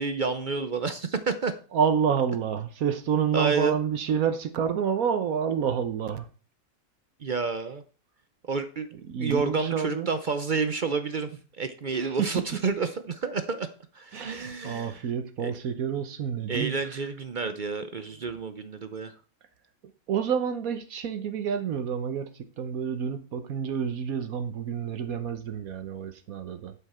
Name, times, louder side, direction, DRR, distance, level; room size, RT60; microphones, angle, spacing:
voice 1, 0.0-1.6 3.3-3.7 7.2-7.8 8.5-8.9 9.2-11.3 11.6-13.7 13.9-15.1 15.4-15.5 16.5-19.1, right 4 dB, 50° right, 10 dB, 0.5 m, -29 dB
voice 2, 1.7-6.3 9.1-10.1 11.9-12.4 14.1-17.0 20.1-22.3 22.6-26.7, right 7 dB, 70° right, 9 dB, 1.3 m, -28 dB
11.0 x 5.7 x 4.3 m, 0.38 s
omnidirectional pair, 1.6 m